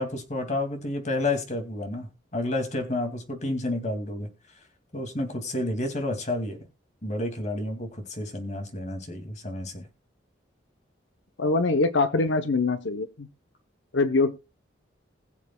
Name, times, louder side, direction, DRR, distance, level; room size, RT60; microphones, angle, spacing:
voice 1, 0.0-4.3 4.9-6.6 7.0-9.9, left 2 dB, 40° left, 2.4 m, -30 dB
voice 2, 11.4-13.3 13.9-14.3, left 3 dB, 85° left, 0.8 m, -23 dB
21.0 x 7.3 x 2.3 m
head